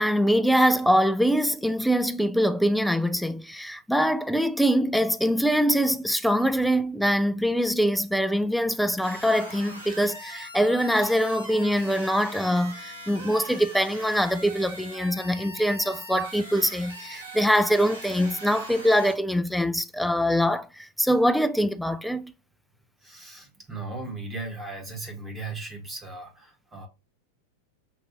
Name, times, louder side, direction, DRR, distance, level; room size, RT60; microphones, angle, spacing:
voice 1, 0.0-22.3, equal, ahead, 0.4 m, -23 dB
sound 1, 9.0-19.1, right 1 dB, 80° right, 1.4 m, -41 dB
voice 2, 23.0-26.9, right 3 dB, 15° right, 1.2 m, -37 dB
6.0 x 2.6 x 2.7 m
figure-of-eight pair, 90°, 0 cm